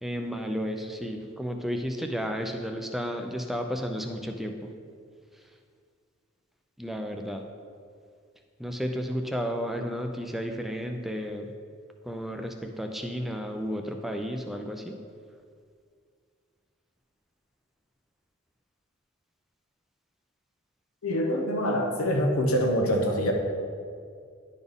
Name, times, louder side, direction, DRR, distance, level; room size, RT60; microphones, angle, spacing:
voice 1, 0.0-4.7 6.8-7.4 8.6-11.5 12.0-15.0, equal, ahead, 4 dB, 0.4 m, -32 dB
voice 2, 21.0-23.3, equal, 85° left, 2 dB, 1.0 m, -25 dB
10.5 x 4.1 x 3.5 m, 2.2 s
head